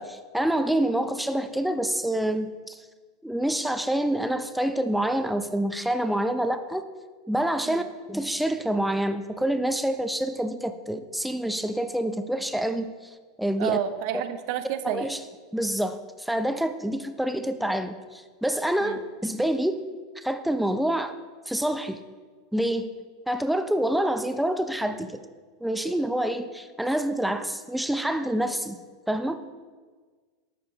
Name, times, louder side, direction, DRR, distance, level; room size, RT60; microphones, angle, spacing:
voice 1, 0.0-2.8 3.2-6.9 7.3-7.8 8.1-12.9 13.4-13.8 14.8-15.2 15.5-19.8 20.2-21.1 21.5-22.0 22.5-22.9 23.3-25.2 25.6-28.8 29.1-29.4, right 1 dB, ahead, 8 dB, 0.5 m, -27 dB
voice 2, 13.6-15.1 18.8-19.0, right 10 dB, 60° right, 10 dB, 0.7 m, -30 dB
11.5 x 6.8 x 3.5 m, 1.4 s
hypercardioid pair, 105°, 2 cm